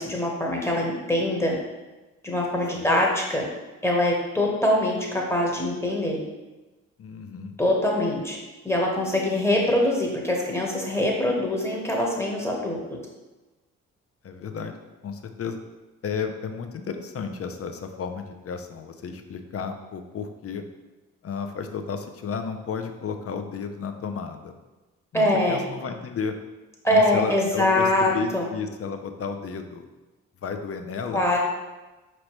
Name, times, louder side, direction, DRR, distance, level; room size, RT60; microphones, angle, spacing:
voice 1, 0.0-1.5 2.2-3.4 3.8-6.2 7.6-8.4 8.6-12.8 25.1-25.6 26.8-28.5 31.1-31.4, left 1 dB, 5° left, -2 dB, 1.2 m, -23 dB
voice 2, 7.0-7.5 14.2-14.8 15.0-15.6 16.0-20.6 21.2-24.5 25.1-26.3 26.9-29.9 30.4-31.2, left 5 dB, 40° left, 7 dB, 0.6 m, -32 dB
5.1 x 3.0 x 3.0 m, 1.1 s
hypercardioid pair, 45°, 35 cm